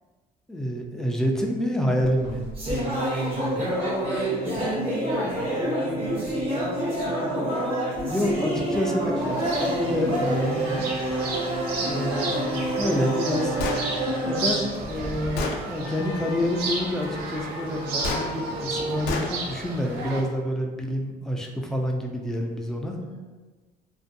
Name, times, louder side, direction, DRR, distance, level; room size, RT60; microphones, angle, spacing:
voice 1, 0.5-2.4 7.2-7.3 8.1-10.8 11.8-13.6 14.2-23.0, equal, 5° left, 1 dB, 0.3 m, -28 dB
sound 1, 2.0-15.5, right 1 dB, 35° right, 0.8 m, -28 dB
voice 2, 2.8-7.3 8.1-9.4 11.0-11.2 11.8-12.3 22.9-23.2, right 1 dB, 65° right, -9 dB, 0.9 m, -34 dB
sound 2, 9.1-20.2, right 2 dB, 80° right, 0.5 m, -33 dB
Gunshot gunfire, 13.6-13.8 14.7-14.8 15.4-15.6 18.0-18.3 19.1-19.3, left 3 dB, 85° left, 0.4 m, -28 dB
2.5 x 2.2 x 2.5 m, 1.3 s
cardioid pair, 110°, 17 cm